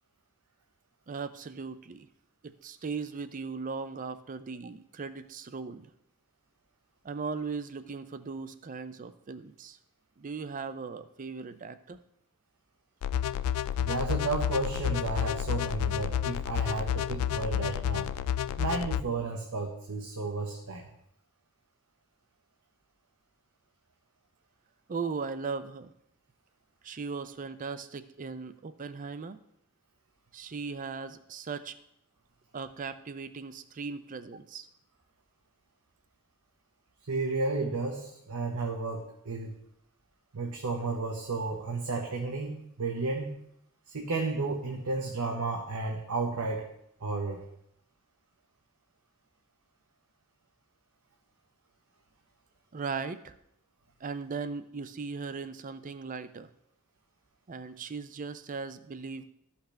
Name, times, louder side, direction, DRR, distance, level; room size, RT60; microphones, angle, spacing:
voice 1, 1.1-2.1 2.4-5.9 7.0-9.8 10.2-12.0 24.9-25.9 26.8-29.4 30.3-31.8 32.5-34.7 52.7-53.3 54.0-56.5 57.5-59.2, right 5 dB, 35° right, 12 dB, 0.5 m, -38 dB
sound 1, 13.0-19.0, left 10 dB, 80° left, 0.3 m, -30 dB
voice 2, 13.8-18.1 18.6-20.8 37.1-39.6 40.3-43.3 43.9-46.6 47.0-47.4, right 3 dB, 75° right, 1 dB, 1.0 m, -32 dB
13.0 x 5.8 x 3.3 m, 0.76 s
head